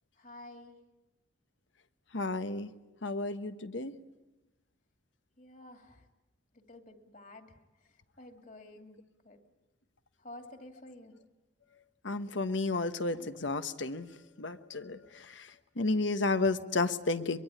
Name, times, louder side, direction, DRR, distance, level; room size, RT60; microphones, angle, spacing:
voice 1, 0.2-0.8 5.4-6.1 6.5-7.6 8.2-9.0 9.2-9.4 10.2-11.1, left 1 dB, 45° left, 6 dB, 2.5 m, -50 dB
voice 2, 2.1-2.7 3.0-4.0 12.0-17.4, left 3 dB, 85° left, 10 dB, 1.2 m, -32 dB
23.5 x 22.5 x 9.9 m, 1.1 s
head